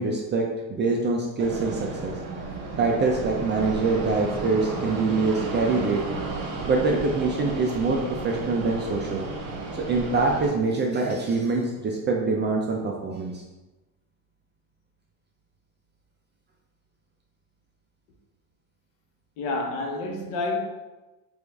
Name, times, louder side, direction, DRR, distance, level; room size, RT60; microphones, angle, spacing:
voice 1, 0.0-2.2 2.8-6.0 6.7-9.3 9.7-13.4, right 3 dB, 25° right, 0 dB, 0.4 m, -25 dB
Fixed-wing aircraft airplane, 1.4-10.5, right 3 dB, 70° right, 1.1 m, -33 dB
voice 2, 19.4-20.6, left 3 dB, 70° left, 1 dB, 1.1 m, -28 dB
4.8 x 2.6 x 3.5 m, 1.1 s
cardioid pair, 135°, 43 cm